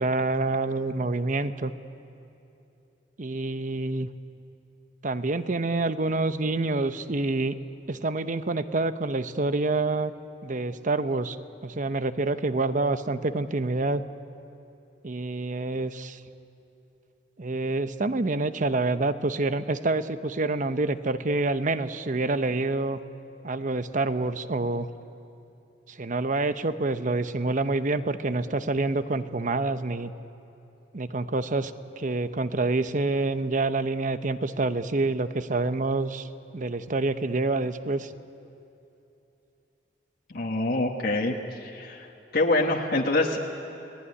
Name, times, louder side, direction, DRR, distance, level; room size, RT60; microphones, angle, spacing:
voice 1, 0.0-1.7 3.2-4.1 5.0-7.5 7.9-10.1 10.4-11.4 11.6-14.0 15.0-16.2 17.4-23.0 23.4-24.9 25.9-30.1 30.9-36.3 36.5-38.1, right 2 dB, 50° right, 11 dB, 0.9 m, -27 dB
voice 2, 40.3-42.1 42.3-43.4, left 2 dB, 60° left, 0 dB, 1.5 m, -25 dB
29.5 x 18.5 x 9.8 m, 2.8 s
head